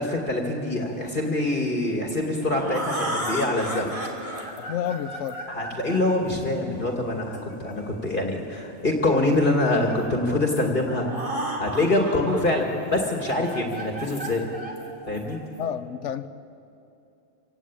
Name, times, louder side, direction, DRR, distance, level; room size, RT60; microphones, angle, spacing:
voice 1, 0.0-3.9 5.5-14.4 15.1-15.4, left 2 dB, 45° left, 1 dB, 2.5 m, -25 dB
sound 1, 2.0-7.9 8.9-10.1 10.6-10.7 10.9-12.4 12.8-15.6, right 1 dB, 30° right, 3.2 m, -34 dB
voice 2, 4.6-5.4 15.6-16.3, left 9 dB, 85° left, 12 dB, 1.1 m, -30 dB
26.5 x 17.5 x 8.8 m, 2.7 s
omnidirectional pair, 1.2 m